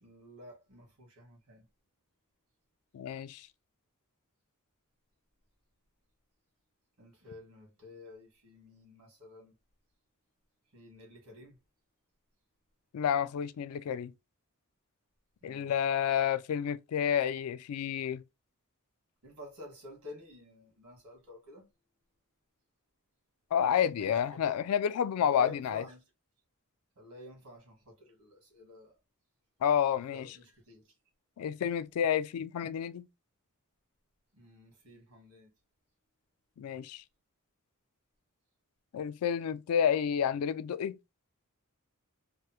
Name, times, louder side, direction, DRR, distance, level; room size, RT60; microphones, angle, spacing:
voice 1, 0.0-1.7 7.0-9.5 10.7-11.6 15.4-15.7 19.2-21.7 24.0-24.6 25.2-26.0 26.9-29.0 30.1-30.9 34.3-35.5, left 1 dB, 85° right, 1.6 m, -50 dB
voice 2, 2.9-3.5 12.9-14.1 15.4-18.2 23.5-25.8 29.6-30.4 31.4-33.1 36.6-37.0 38.9-41.0, left 8 dB, 75° left, 0.3 m, -30 dB
3.4 x 2.0 x 2.9 m
head